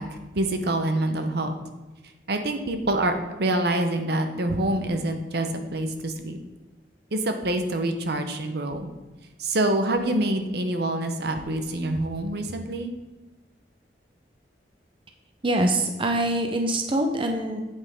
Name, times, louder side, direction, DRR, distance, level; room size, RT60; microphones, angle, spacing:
voice 1, 0.0-1.5 2.3-6.4 7.1-8.9 9.4-12.9, right 1 dB, 65° right, 6 dB, 0.9 m, -26 dB
voice 2, 15.4-17.6, right 1 dB, 30° right, 4 dB, 0.7 m, -24 dB
8.3 x 8.1 x 3.6 m, 1.2 s
head